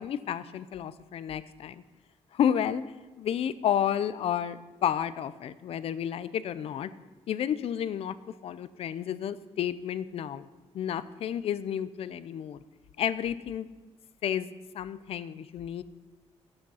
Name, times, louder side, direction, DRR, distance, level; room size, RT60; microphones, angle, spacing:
voice 1, 0.0-1.8 2.3-2.8 3.2-6.9 7.3-8.2 8.4-10.5 10.7-12.6 13.0-13.7 14.2-15.8, left 9 dB, 65° left, 15 dB, 0.5 m, -31 dB
12.0 x 8.8 x 5.6 m, 1.2 s
wide cardioid pair, 175°, 11 cm